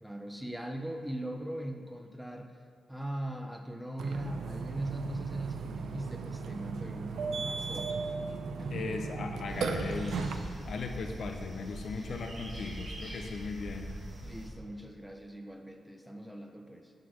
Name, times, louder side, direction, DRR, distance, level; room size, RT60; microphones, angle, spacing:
voice 1, 0.0-2.6 2.9-8.1 8.6-8.9 14.2-16.9, right 1 dB, ahead, 4 dB, 0.5 m, -40 dB
Burping eructation, 4.0-10.4, right 4 dB, 80° right, 0.5 m, -36 dB
voice 2, 8.7-10.4 10.6-14.0, left 4 dB, 55° left, 4 dB, 0.6 m, -38 dB
sound 1, 9.5-14.5, right 1 dB, 35° right, 1.9 m, -43 dB
11.0 x 3.9 x 5.9 m, 2.2 s
wide cardioid pair, 165°, 0 cm